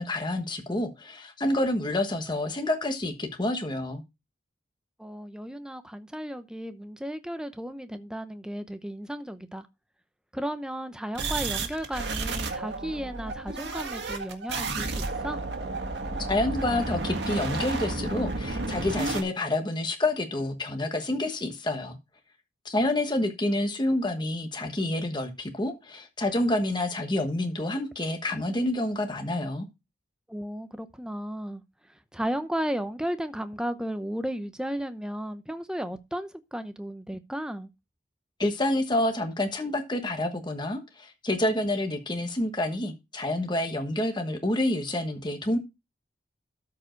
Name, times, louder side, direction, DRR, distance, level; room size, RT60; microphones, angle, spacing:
voice 1, 0.0-4.0 16.3-22.0 22.6-29.7 38.4-45.6, left 1 dB, 25° left, 1.3 m, -28 dB
voice 2, 5.0-9.7 10.3-15.4 30.3-31.6 31.9-37.7, equal, 5° right, 0.7 m, -34 dB
sound 1, 11.1-19.2, right 3 dB, 70° right, 1.7 m, -32 dB
13.0 x 4.8 x 4.5 m
head